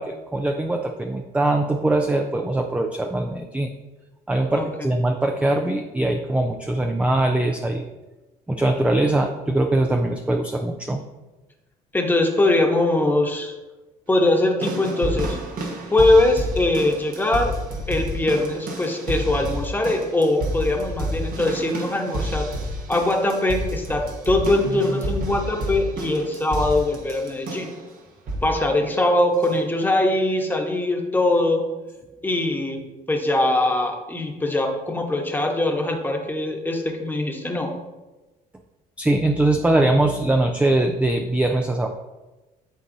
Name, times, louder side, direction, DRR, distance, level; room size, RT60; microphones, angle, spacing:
voice 1, 0.0-3.7 4.3-7.8 8.5-11.0 39.0-41.9, right 2 dB, 5° right, 4 dB, 0.4 m, -22 dB
voice 2, 11.9-13.5 14.1-15.4 15.9-17.5 17.9-22.5 22.9-27.7 28.4-31.6 32.2-32.8 33.1-37.7, left 2 dB, 10° left, 1 dB, 1.1 m, -22 dB
sound 1, 14.6-27.8 28.3-28.6 29.4-29.5, right 1 dB, 60° right, 1.4 m, -30 dB
11.0 x 4.0 x 2.7 m, 1.1 s
cardioid pair, 110°, 17 cm